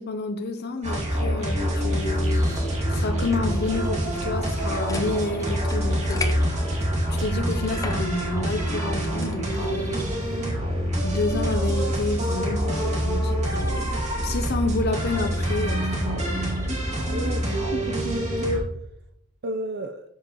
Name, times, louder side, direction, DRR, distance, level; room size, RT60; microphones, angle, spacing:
voice 1, 0.0-6.7 7.1-10.2 11.0-16.5, left 3 dB, 55° left, 6 dB, 0.6 m, -30 dB
sound 1, 0.8-18.6, equal, 35° right, 2.3 m, -26 dB
sound 2, 2.0-17.7, right 1 dB, 15° right, 1.0 m, -44 dB
sound 3, 4.3-9.5, left 3 dB, 15° left, 0.7 m, -39 dB
voice 2, 17.1-18.6 19.4-20.0, right 1 dB, 55° right, 6 dB, 0.6 m, -31 dB
8.6 x 7.2 x 3.0 m, 0.78 s
head